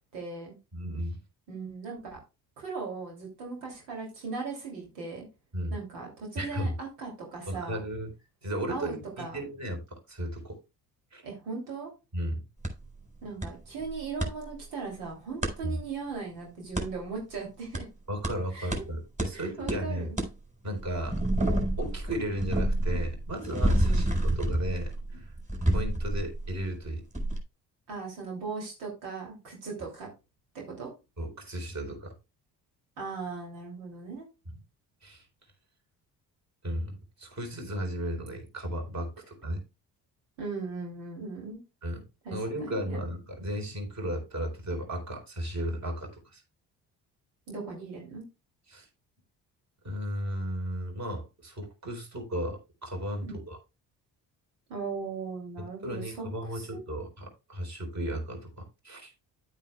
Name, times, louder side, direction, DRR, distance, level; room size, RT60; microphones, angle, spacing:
voice 1, 0.1-0.6 1.5-2.2 2.6-5.3 5.7-7.8 8.7-9.4 11.2-11.9 13.2-17.9 18.5-18.8 19.3-20.2 23.8-24.1 27.9-30.1 30.7-30.9 33.0-34.3 40.4-41.6 42.2-43.0 47.5-48.2 53.2-53.5 54.7-56.8, right 4 dB, 75° right, 3.1 m, -38 dB
voice 2, 0.7-1.2 5.5-5.8 6.4-6.7 7.5-8.1 8.4-10.6 11.1-11.2 12.1-12.4 15.6-15.8 18.1-20.1 20.6-21.2 21.8-25.3 25.7-27.0 31.2-32.1 35.0-35.3 36.6-39.6 41.8-42.0 42.3-46.4 48.7-48.9 49.8-53.6 55.6-59.1, right 1 dB, 35° right, 4.3 m, -35 dB
sound 1, 12.6-12.7 13.4-13.5 13.8-14.3 15.4-15.5 16.8-16.9 17.7-17.8 18.2-18.3 18.7-18.8 19.2-19.3 19.7-19.8 20.2-20.3 20.8-26.8 27.1-27.4, right 1 dB, 15° right, 4.3 m, -28 dB
10.5 x 9.2 x 2.3 m
hypercardioid pair, 45°, 50 cm